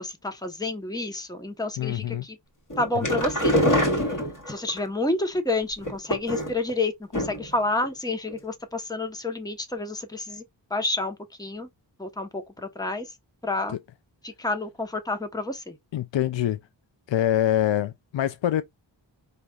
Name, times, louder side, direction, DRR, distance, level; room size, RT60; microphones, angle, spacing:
voice 1, 0.0-2.4 2.8-3.5 4.5-10.4 10.7-11.7 12.0-13.1 13.4-13.8 14.2-15.8, left 2 dB, 10° left, 1.0 m, -29 dB
voice 2, 1.8-2.2 3.0-3.1 13.7-13.8 15.9-16.6 17.1-18.6, left 11 dB, 70° left, 0.5 m, -25 dB
sound 1, 2.7-4.8 5.8-6.7 7.1-7.6 7.8-7.9 8.3-8.4, equal, 40° left, 2.1 m, -25 dB
4.9 x 3.3 x 2.4 m
cardioid pair, 50°, 47 cm